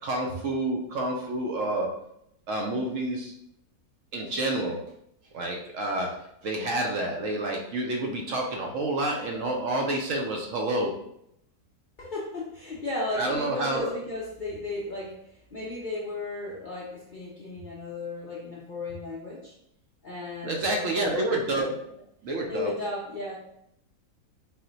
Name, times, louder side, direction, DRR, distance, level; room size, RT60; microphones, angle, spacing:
voice 1, 0.0-2.0 2.5-3.3 4.1-4.8 5.3-11.0 13.2-13.9 20.4-21.8 22.2-22.7, right 1 dB, 65° right, 1 dB, 0.9 m, -29 dB
voice 2, 12.0-19.5 20.0-21.2 21.5-21.7 22.5-23.4, left 2 dB, 55° left, -5 dB, 0.5 m, -35 dB
4.2 x 2.1 x 3.9 m, 0.77 s
omnidirectional pair, 1.6 m